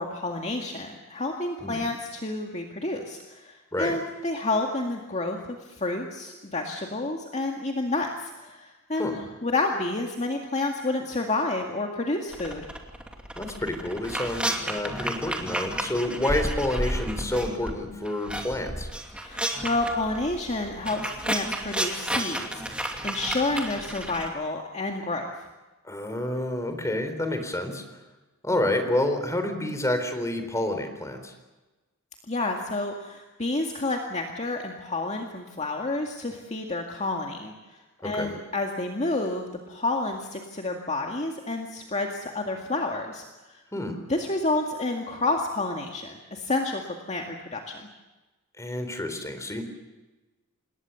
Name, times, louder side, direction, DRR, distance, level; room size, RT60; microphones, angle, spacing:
voice 1, 0.0-5.4 5.7-12.6 19.1-25.3 32.3-43.6 44.1-46.8 47.1-47.8, left 2 dB, 30° left, 2 dB, 2.1 m, -30 dB
sound 1, 12.3-17.7 18.0-24.3, right 1 dB, 5° right, 2.7 m, -32 dB
voice 2, 13.4-18.9 25.8-27.8 28.4-31.3 38.0-38.3 43.7-44.0 48.6-49.6, left 1 dB, 15° left, 7 dB, 4.0 m, -29 dB
27.0 x 20.5 x 7.1 m, 1.1 s
head